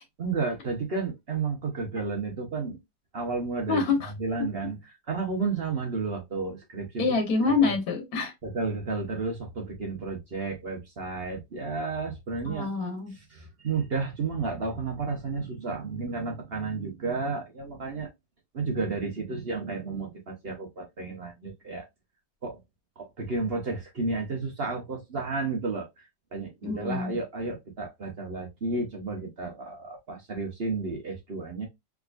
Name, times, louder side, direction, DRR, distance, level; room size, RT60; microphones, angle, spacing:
voice 1, 0.2-2.8 3.1-3.8 4.2-4.8 5.1-7.1 7.6-7.7 8.4-12.7 13.3-18.1 18.5-21.9 22.4-22.6 23.0-31.7, right 4 dB, 45° right, 0.8 m, -32 dB
voice 2, 3.7-4.1 7.0-8.3 12.4-13.1 26.6-27.1, left 4 dB, 60° left, 1.4 m, -26 dB
3.5 x 2.9 x 2.4 m
omnidirectional pair, 1.9 m